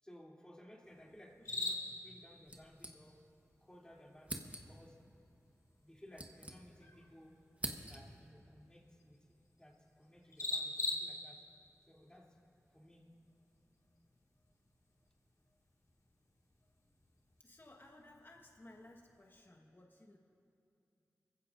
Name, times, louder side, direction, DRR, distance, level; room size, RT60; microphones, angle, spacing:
voice 1, 0.0-3.2 3.6-5.0 5.8-7.3 7.8-11.4 11.9-12.4 12.7-13.0, equal, 15° left, -3 dB, 2.9 m, -59 dB
sound 1, 0.8-19.4, left 2 dB, 70° left, 1.9 m, -48 dB
sound 2, 2.5-3.5 3.7-3.8 4.2-4.9 5.7-7.0 7.3-8.3, right 1 dB, 25° right, 1.2 m, -47 dB
voice 2, 17.4-20.2, left 1 dB, 40° left, 0 dB, 1.3 m, -58 dB
25.0 x 15.5 x 2.6 m, 2.7 s
wide cardioid pair, 55°, 6 cm